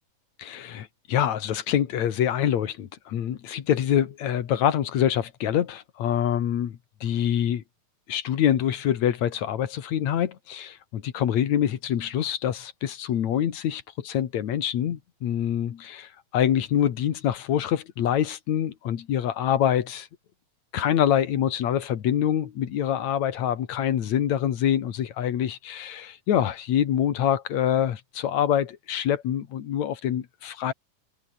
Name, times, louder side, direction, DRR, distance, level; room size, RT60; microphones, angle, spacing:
voice 1, 0.4-7.6 8.1-20.1 20.7-30.7, left 10 dB, 55° left, 2.7 m, -25 dB
omnidirectional pair, 4.2 m